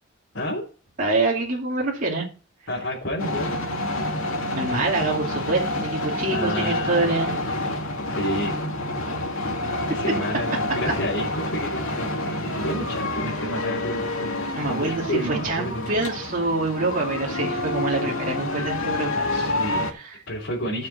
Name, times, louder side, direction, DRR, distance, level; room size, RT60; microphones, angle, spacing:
voice 1, 0.3-0.7 2.7-3.5 6.3-7.5 8.0-8.6 9.9-14.3 14.7-16.1 19.3-19.9 20.3-20.9, equal, 60° left, -6 dB, 3.3 m, -30 dB
voice 2, 1.0-2.3 4.6-7.3 14.5-19.3 19.9-20.1, right 2 dB, 40° right, -2 dB, 2.6 m, -25 dB
sound 1, 3.2-19.9, left 1 dB, 85° left, 2.2 m, -28 dB
14.0 x 6.6 x 4.2 m, 0.37 s
head